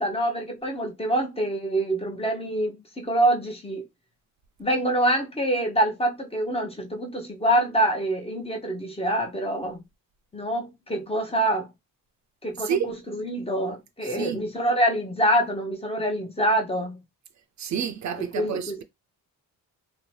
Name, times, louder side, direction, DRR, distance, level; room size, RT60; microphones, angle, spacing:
voice 1, 0.0-3.9 4.6-9.8 10.3-11.7 12.4-17.0 18.2-18.7, right 1 dB, 15° left, 0.7 m, -25 dB
voice 2, 12.6-12.9 14.0-14.5 17.6-18.8, right 8 dB, 55° right, 0.5 m, -29 dB
2.7 x 2.1 x 3.1 m
cardioid pair, 90°, 34 cm